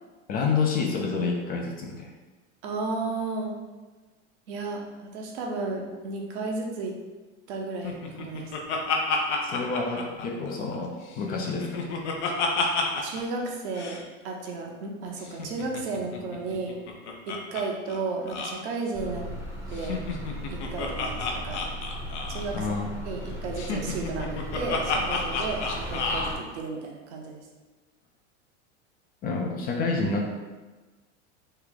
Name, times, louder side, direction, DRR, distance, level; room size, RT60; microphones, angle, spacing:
voice 1, 0.3-2.1 9.4-11.8 22.5-23.0 29.2-30.3, left 4 dB, 25° left, 1 dB, 0.4 m, -28 dB
voice 2, 2.6-3.5 4.5-7.0 7.5-8.5 13.0-14.0 14.2-16.7 17.3-19.3 19.7-20.0 20.5-21.6 22.3-22.7 23.1-27.4, right 3 dB, 65° right, 1 dB, 0.8 m, -33 dB
Laughter, 7.8-10.8 11.1-13.2 13.5-13.6 13.8-14.0 15.3-17.6 17.9-18.0 18.3-18.6 19.7-22.5 23.6-26.3, left 4 dB, 75° left, 0.7 m, -30 dB
sound 1, 18.9-26.4, equal, 5° right, 0.7 m, -37 dB
3.2 x 2.2 x 3.8 m, 1.2 s
hypercardioid pair, 110°, 35 cm